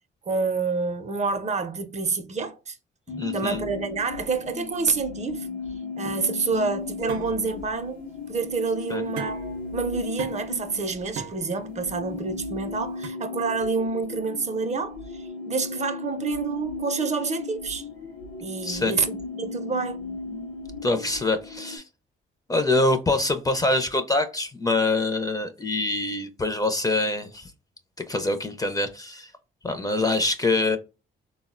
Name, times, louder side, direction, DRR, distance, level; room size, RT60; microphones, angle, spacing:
voice 1, 0.3-2.8 3.1-5.5 6.0-8.0 8.3-17.9 18.4-20.0, right 4 dB, 35° right, 0.5 m, -28 dB
sound 1, 3.1-21.8, left 3 dB, 90° left, 0.5 m, -36 dB
voice 2, 3.2-3.6 6.5-6.6 8.9-9.0 18.6-18.9 20.8-21.8 22.5-27.5 28.1-29.3 29.6-30.8, left 2 dB, 20° left, 0.4 m, -25 dB
sound 2, 6.0-13.1, right 6 dB, 85° right, 0.5 m, -41 dB
3.6 x 2.0 x 2.4 m
cardioid pair, 90°, 20 cm